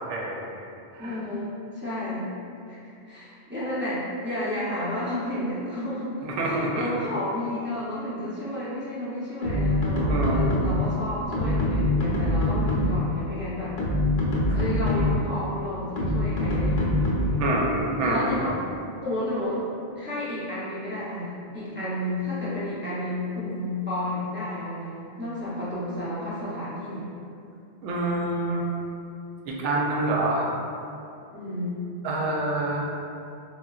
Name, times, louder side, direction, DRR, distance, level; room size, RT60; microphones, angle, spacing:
voice 1, 0.1-0.6 0.9-1.2 6.2-6.9 10.1-10.6 14.5-14.6 17.0-18.3 27.8-28.7 29.5-30.5 32.0-32.9, right 2 dB, 80° right, -2 dB, 0.9 m, -27 dB
voice 2, 1.0-2.3 2.7-13.8 14.5-17.5 18.0-18.6 19.0-19.6 20.0-27.1 31.3-31.9, left 1 dB, 20° right, -11 dB, 0.3 m, -31 dB
sound 1, 9.4-10.9 11.3-13.1 13.6-15.3 16.0-17.5, left 1 dB, 65° left, 0.7 m, -24 dB
3.7 x 2.2 x 2.3 m, 2.6 s
omnidirectional pair, 1.2 m